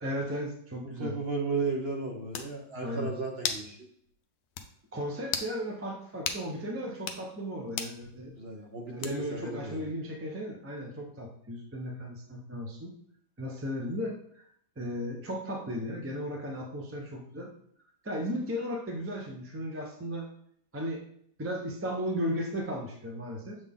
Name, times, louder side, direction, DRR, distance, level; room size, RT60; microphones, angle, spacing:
voice 1, 0.0-1.1 2.8-3.1 4.9-8.3 8.9-12.9 13.4-14.4 14.8-17.5 18.0-20.3 20.7-21.0 21.4-23.6, equal, 20° right, 0 dB, 0.3 m, -35 dB
voice 2, 1.0-3.8 8.4-9.9, right 3 dB, 50° right, 1 dB, 0.8 m, -34 dB
sound 1, 1.9-2.0 2.3-2.5 3.4-3.7 4.1-4.2 4.6-4.7 5.3-5.5 6.3-6.4 7.0-7.2 7.8-8.0 9.0-9.4, left 7 dB, 70° left, 1.0 m, -34 dB
7.2 x 4.1 x 3.6 m, 0.66 s
omnidirectional pair, 2.0 m